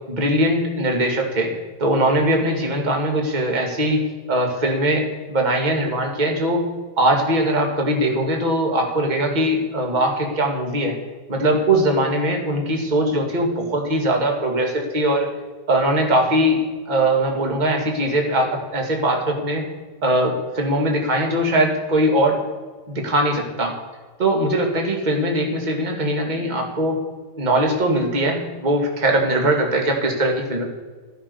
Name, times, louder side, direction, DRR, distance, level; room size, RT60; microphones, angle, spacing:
voice 1, 0.1-1.5 1.8-4.0 4.3-6.6 7.0-10.9 11.3-15.3 15.7-16.6 16.8-19.7 20.0-22.4 22.9-23.8 24.2-27.0 27.4-30.6, right 1 dB, 20° right, 2 dB, 1.2 m, -21 dB
14.5 x 10.5 x 7.0 m, 1.4 s
omnidirectional pair, 4.4 m